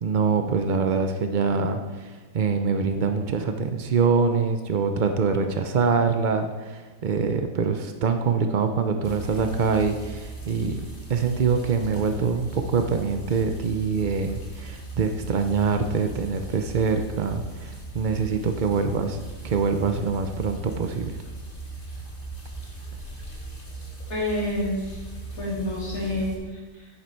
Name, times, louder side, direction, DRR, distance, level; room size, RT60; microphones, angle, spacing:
voice 1, 0.0-10.8 11.1-21.1, right 5 dB, 75° right, 6 dB, 0.4 m, -24 dB
sound 1, 9.0-26.3, right 3 dB, 30° left, 2.1 m, -38 dB
voice 2, 24.1-25.0 25.3-26.9, left 1 dB, 55° left, -6 dB, 3.9 m, -29 dB
10.5 x 9.7 x 4.5 m, 1.3 s
omnidirectional pair, 1.8 m